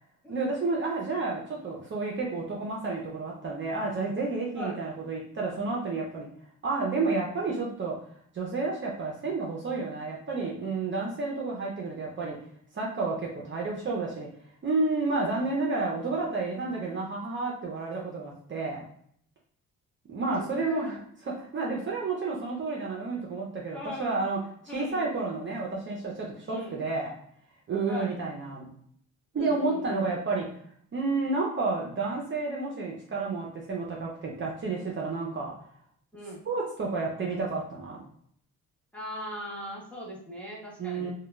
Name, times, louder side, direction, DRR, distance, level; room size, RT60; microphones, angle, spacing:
voice 1, 0.3-6.3 6.6-7.9 8.3-12.4 12.7-14.3 14.6-18.9 20.1-21.0 21.4-24.4 24.7-27.1 27.7-28.7 29.3-30.4 30.9-35.5 36.5-38.0 40.8-41.1, right 3 dB, 35° right, -3 dB, 0.6 m, -30 dB
voice 2, 20.4-20.9 23.7-24.2 24.7-25.1 26.5-26.8 27.9-28.2 29.3-30.1 36.1-36.4 38.9-41.1, left 1 dB, 5° left, -5 dB, 0.9 m, -39 dB
2.2 x 2.2 x 3.0 m, 0.64 s
cardioid pair, 100°, 34 cm